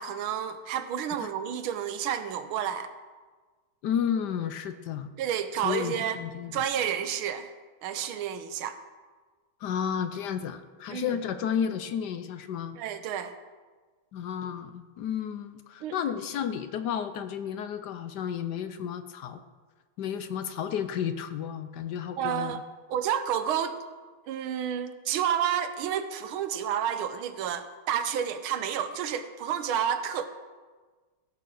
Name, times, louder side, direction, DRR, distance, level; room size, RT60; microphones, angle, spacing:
voice 1, 0.0-2.9 5.2-6.2 6.5-7.5 7.8-8.8 10.9-11.2 12.8-13.3 15.8-16.0 22.2-22.6 22.9-23.8 24.3-30.3, right 9 dB, 85° right, 10 dB, 1.6 m, -30 dB
voice 2, 3.8-5.1 5.6-6.5 9.6-12.8 14.1-19.4 20.0-22.6, left 8 dB, 70° left, 10 dB, 1.1 m, -32 dB
15.0 x 6.9 x 6.3 m, 1.4 s
omnidirectional pair, 2.2 m